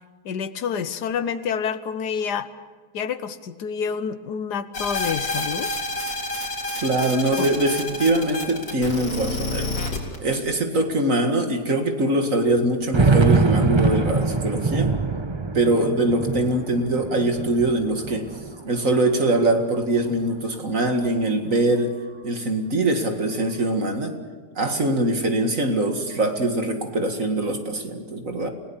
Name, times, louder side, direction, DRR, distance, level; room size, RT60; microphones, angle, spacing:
voice 1, 0.2-2.5 2.9-5.7 7.4-7.5, left 7 dB, 70° left, 12 dB, 1.5 m, -28 dB
sound 1, 4.7-10.3, left 2 dB, 90° left, 4.3 m, -28 dB
voice 2, 6.8-9.7 10.2-14.9 15.5-18.3 18.6-22.0 22.2-24.1 24.6-28.5, right 1 dB, 45° right, 5 dB, 2.3 m, -23 dB
sound 2, 9.3-9.4 10.2-10.3 10.8-10.9 12.6-19.0 19.4-20.3, right 4 dB, 25° right, 0.6 m, -23 dB
29.0 x 17.0 x 7.2 m, 1.5 s
omnidirectional pair, 1.9 m